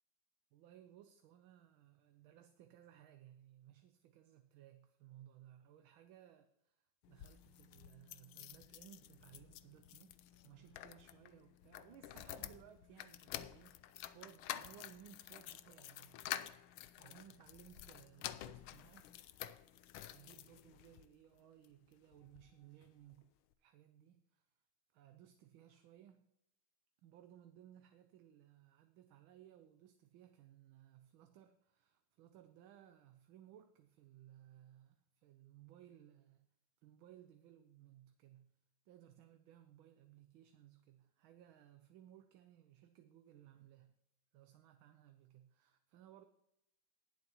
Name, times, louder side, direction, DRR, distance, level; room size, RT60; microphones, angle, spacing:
voice 1, 0.5-10.1 10.4-16.2 17.0-19.1 20.0-23.3 23.6-24.5 24.9-26.3 27.0-36.5 36.8-38.6 38.9-43.9 44.3-46.3, right 11 dB, 75° right, 8 dB, 1.5 m, -61 dB
sound 1, 7.0-21.1 21.6-22.5 22.8-22.9 23.1-23.2, left 12 dB, 85° left, 1.4 m, -50 dB
19.5 x 7.9 x 3.0 m, 0.80 s
omnidirectional pair, 2.3 m